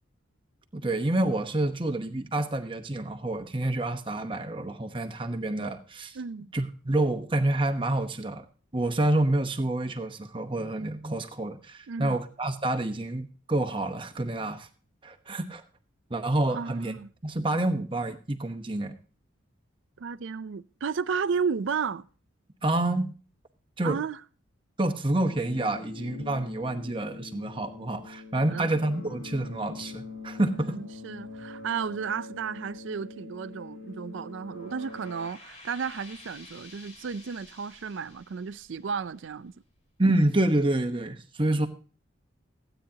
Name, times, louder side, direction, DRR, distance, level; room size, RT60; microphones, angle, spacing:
voice 1, 0.7-6.2 6.5-8.4 8.7-14.7 15.0-15.6 16.1-18.9 22.6-23.1 23.8-24.0 24.8-30.7 40.0-41.7, right 1 dB, 25° right, 0.9 m, -28 dB
voice 2, 6.1-6.5 11.9-12.2 16.5-17.1 20.0-22.1 23.8-24.2 28.5-28.7 30.4-39.5, right 6 dB, 70° right, 0.4 m, -33 dB
sound 1, 25.3-35.3, left 3 dB, 80° left, 2.0 m, -43 dB
sound 2, 34.4-39.6, left 2 dB, 35° left, 2.5 m, -51 dB
15.5 x 9.0 x 2.8 m
head